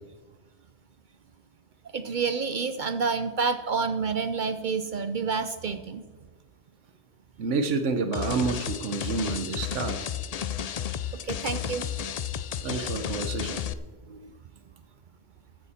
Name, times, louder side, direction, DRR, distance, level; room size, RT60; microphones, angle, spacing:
voice 1, 1.9-6.0 11.2-11.9 12.6-13.0 14.1-14.3, right 5 dB, 55° right, 10 dB, 0.6 m, -29 dB
voice 2, 7.4-10.0 12.6-13.6, right 4 dB, 85° right, 8 dB, 1.3 m, -29 dB
sound 1, 8.1-13.7, left 9 dB, 75° left, 0.3 m, -32 dB
14.0 x 9.8 x 4.3 m, 1.3 s
omnidirectional pair, 1.2 m